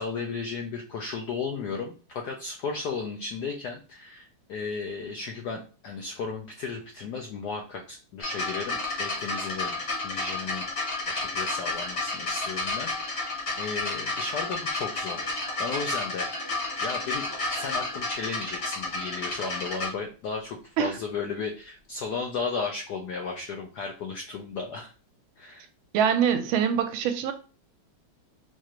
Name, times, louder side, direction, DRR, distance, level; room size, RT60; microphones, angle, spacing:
voice 1, 0.0-10.7 11.0-15.3 15.6-16.5 16.8-17.3 17.5-24.9 25.4-25.7, left 4 dB, 85° left, 2 dB, 0.9 m, -34 dB
sound 1, 8.2-19.9 20.8-20.9, left 2 dB, 45° left, 1.0 m, -31 dB
voice 2, 25.9-27.3, right 8 dB, 80° right, 7 dB, 1.4 m, -24 dB
4.6 x 2.4 x 2.9 m, 0.35 s
omnidirectional pair, 2.3 m